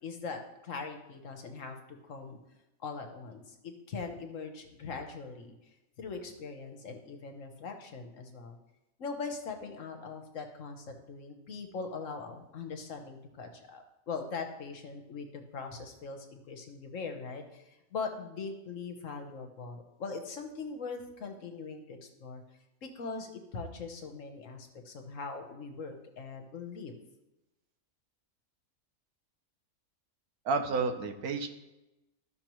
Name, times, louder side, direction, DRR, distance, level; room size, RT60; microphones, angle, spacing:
voice 1, 0.0-2.4 2.8-5.5 6.0-8.6 9.0-22.4 22.8-26.9, left 4 dB, 60° left, 5 dB, 1.4 m, -41 dB
voice 2, 30.5-31.5, right 4 dB, 85° right, 6 dB, 1.3 m, -30 dB
13.5 x 6.1 x 3.1 m, 0.99 s
omnidirectional pair, 1.5 m